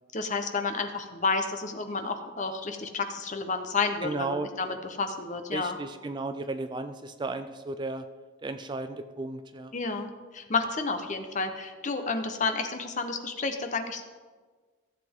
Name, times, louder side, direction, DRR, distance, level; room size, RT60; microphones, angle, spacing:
voice 1, 0.1-5.8 9.7-14.0, left 4 dB, 40° left, 6 dB, 0.8 m, -31 dB
voice 2, 4.0-4.5 5.5-8.0 8.4-9.7, right 3 dB, 20° right, 9 dB, 0.4 m, -34 dB
15.5 x 7.6 x 3.6 m, 1.4 s
head